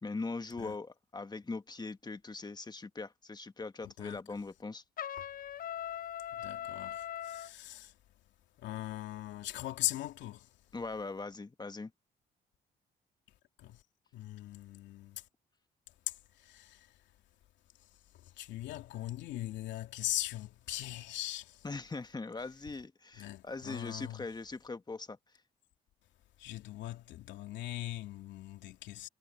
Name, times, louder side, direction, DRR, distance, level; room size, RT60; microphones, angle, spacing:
voice 1, 0.0-4.8 10.7-11.9 21.6-25.2, left 3 dB, 20° left, 1.6 m, -41 dB
voice 2, 3.8-4.2 5.2-5.3 6.3-8.0 8.6-10.5 13.6-13.8 14.1-15.2 16.1-17.0 17.8-17.9 18.1-21.7 23.2-24.2 26.4-29.1, left 14 dB, 80° left, 2.8 m, -40 dB
Trumpet, 5.0-7.5, left 10 dB, 50° left, 0.6 m, -40 dB
supercardioid pair, 65°, 18 cm